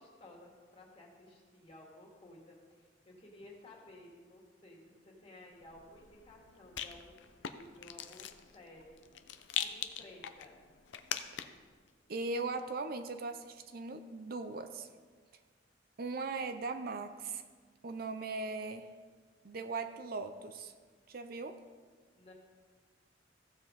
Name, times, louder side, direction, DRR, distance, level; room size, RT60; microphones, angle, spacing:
voice 1, 0.0-9.0 9.6-10.6 22.1-22.3, left 1 dB, 35° left, -2 dB, 2.3 m, -55 dB
Rattle, 5.6-11.7, left 9 dB, 75° left, 0.6 m, -42 dB
voice 2, 12.1-14.9 16.0-17.4 17.8-18.9 19.4-20.7 21.1-21.6, right 3 dB, 55° right, 8 dB, 0.6 m, -39 dB
15.0 x 7.0 x 4.0 m, 1.5 s
head